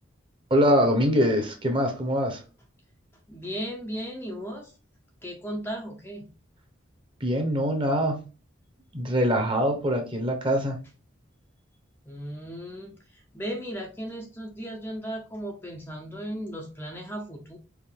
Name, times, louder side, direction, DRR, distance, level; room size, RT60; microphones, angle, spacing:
voice 1, 0.5-2.4 7.2-8.2 8.9-10.8, equal, 25° right, 1.0 m, -23 dB
voice 2, 3.3-4.8 5.2-6.3 12.0-17.6, equal, 10° left, 0.6 m, -36 dB
4.6 x 2.5 x 3.5 m
head